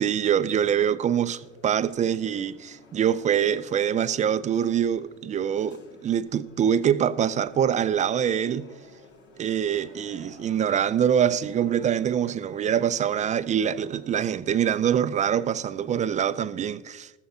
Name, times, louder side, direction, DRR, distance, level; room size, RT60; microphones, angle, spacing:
voice 1, 0.0-8.7 9.4-17.1, right 9 dB, 20° right, 0.4 m, -24 dB
sound 1, 1.2-16.4, left 3 dB, 70° left, 2.4 m, -53 dB
14.5 x 14.0 x 2.8 m
hypercardioid pair, 75°, 37 cm